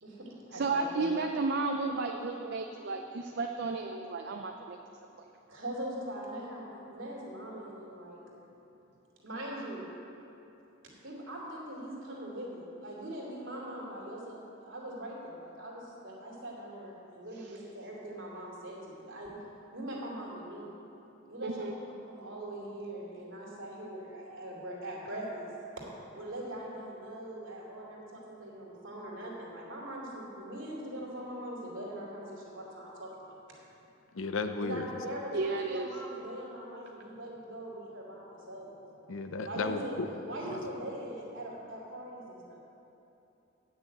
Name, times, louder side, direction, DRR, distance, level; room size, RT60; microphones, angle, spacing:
voice 1, 0.0-1.1 5.5-8.2 9.2-9.9 11.0-19.3 19.7-20.7 21.3-21.7 22.1-25.5 25.8-25.9 26.1-33.1 34.6-38.7 39.4-40.0 40.3-42.6, right 1 dB, 70° right, -4 dB, 2.7 m, -41 dB
voice 2, 0.5-4.8 17.4-17.6 21.4-21.7 35.3-35.9, right 3 dB, 55° right, 4 dB, 0.5 m, -33 dB
voice 3, 34.1-34.9 39.1-40.1, left 4 dB, 85° left, 8 dB, 0.7 m, -34 dB
9.1 x 6.4 x 8.4 m, 2.9 s
head